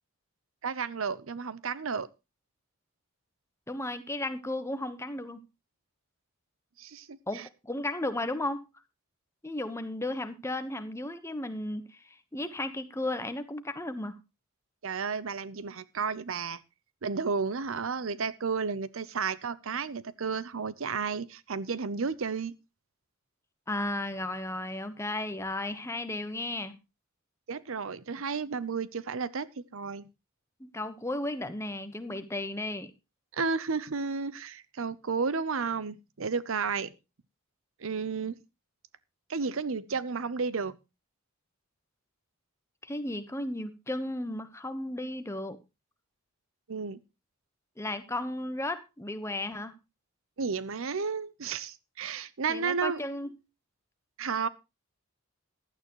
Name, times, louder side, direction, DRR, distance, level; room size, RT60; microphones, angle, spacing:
voice 1, 0.6-2.1 6.8-7.5 14.8-16.6 17.0-22.5 27.5-30.1 33.3-36.9 37.8-38.4 39.3-40.8 46.7-47.0 50.4-53.0 54.2-54.5, right 5 dB, 70° right, 18 dB, 0.7 m, -32 dB
voice 2, 3.7-5.4 7.3-8.6 9.4-14.2 23.7-26.7 30.6-32.9 42.8-45.6 47.8-49.8 52.5-53.3, left 1 dB, 15° left, 10 dB, 1.1 m, -34 dB
15.5 x 11.5 x 3.0 m, 0.26 s
head